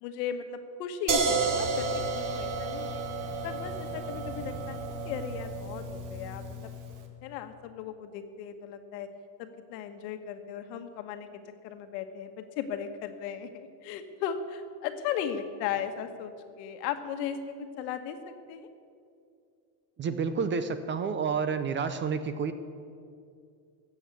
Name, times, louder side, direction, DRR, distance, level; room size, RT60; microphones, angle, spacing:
voice 1, 0.0-1.9 2.1-3.0 3.4-6.7 7.2-9.1 9.4-11.3 11.6-18.7, left 8 dB, 85° left, 8 dB, 1.4 m, -36 dB
sound 1, 1.1-6.9, right 3 dB, 40° right, 1.6 m, -32 dB
voice 2, 20.0-22.5, right 5 dB, 25° right, 11 dB, 0.5 m, -29 dB
14.5 x 7.9 x 8.2 m, 2.4 s
cardioid pair, 140°, 49 cm